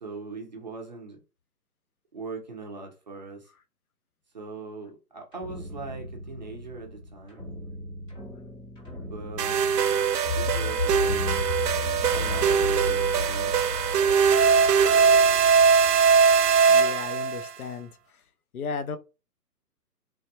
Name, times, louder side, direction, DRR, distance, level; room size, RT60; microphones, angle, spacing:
voice 1, 0.0-1.2 2.1-3.5 4.3-7.5 9.1-9.6 10.4-11.2 12.1-13.6, right 4 dB, 30° right, 0.5 m, -40 dB
sound 1, 5.3-16.6, left 2 dB, 10° left, 0.7 m, -34 dB
sound 2, 9.4-17.5, right 6 dB, 75° right, 0.6 m, -21 dB
voice 2, 16.7-18.2 18.5-19.0, left 5 dB, 65° left, 0.6 m, -35 dB
3.4 x 2.0 x 2.7 m
hypercardioid pair, 145°, 48 cm